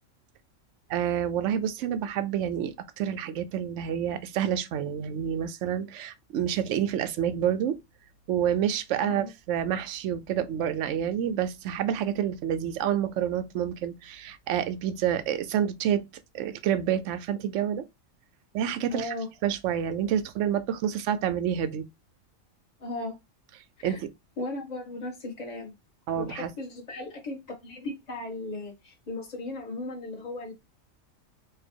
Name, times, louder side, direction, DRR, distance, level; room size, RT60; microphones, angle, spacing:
voice 1, 0.9-7.8 8.3-16.0 16.3-17.8 18.5-19.1 19.4-21.8 23.8-24.1 26.1-26.5, right 9 dB, 70° right, 0.9 m, -28 dB
voice 2, 9.0-9.3 18.9-19.3 22.8-23.2 23.8-24.0 24.4-25.7 26.2-30.5, left 2 dB, 30° left, 1.6 m, -36 dB
4.8 x 2.4 x 4.4 m
omnidirectional pair, 1.4 m